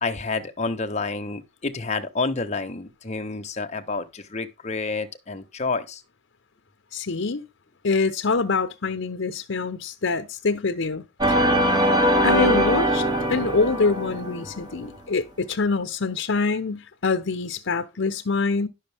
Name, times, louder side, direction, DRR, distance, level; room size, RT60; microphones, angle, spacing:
voice 1, 0.0-6.0, left 3 dB, 35° left, 1.1 m, -29 dB
voice 2, 6.9-7.4 7.8-11.4 12.2-18.7, left 4 dB, 70° left, 0.8 m, -25 dB
sound 1, 11.2-14.7, equal, 20° right, 1.7 m, -21 dB
11.0 x 6.4 x 3.4 m
head